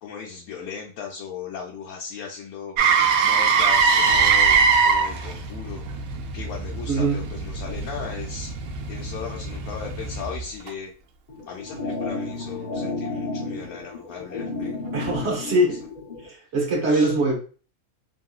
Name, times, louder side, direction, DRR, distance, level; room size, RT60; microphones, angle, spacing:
voice 1, 0.0-2.7 3.2-5.8 6.3-8.5 8.9-10.9 11.5-14.7 15.2-15.7 16.9-17.2, left 6 dB, 85° left, 0 dB, 1.1 m, -37 dB
Motor vehicle (road), 2.8-10.7 15.0-15.2, right 5 dB, 80° right, 1.0 m, -22 dB
voice 2, 6.9-7.2 14.9-15.8 16.2-17.5, right 1 dB, 50° right, -1 dB, 1.2 m, -22 dB
sound 1, 11.3-16.3, left 3 dB, 40° left, 0.8 m, -32 dB
3.0 x 2.7 x 2.3 m, 0.38 s
omnidirectional pair, 1.5 m